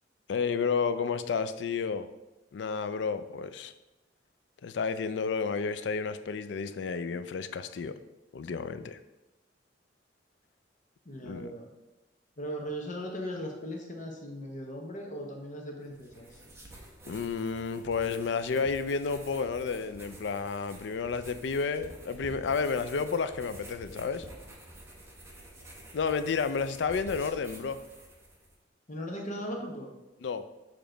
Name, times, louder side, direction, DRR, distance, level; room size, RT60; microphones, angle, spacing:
voice 1, 0.3-2.1 2.5-3.7 4.6-7.9 8.3-9.0 11.2-11.5 17.1-24.3 25.9-27.8 30.2-30.5, left 5 dB, 70° left, 12 dB, 0.4 m, -31 dB
voice 2, 11.0-11.7 12.4-16.4 28.9-29.9, equal, 45° left, 1 dB, 1.0 m, -38 dB
sound 1, 15.8-28.6, right 1 dB, 15° right, 1.0 m, -49 dB
6.8 x 3.0 x 5.0 m, 1.0 s
head